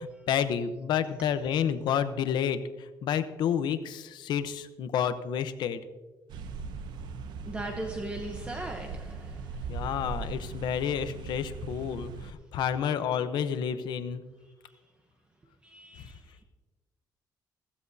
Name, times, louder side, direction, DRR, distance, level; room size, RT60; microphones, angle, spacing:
voice 1, 0.0-5.8 9.7-14.2 16.0-16.1, left 8 dB, 85° left, 0.8 m, -30 dB
sound 1, 6.3-12.3, right 5 dB, 85° right, 0.7 m, -39 dB
voice 2, 7.5-10.0 14.4-14.9 15.6-16.4, right 1 dB, 15° right, 0.9 m, -40 dB
15.5 x 15.0 x 2.8 m
cardioid pair, 165°, 7 cm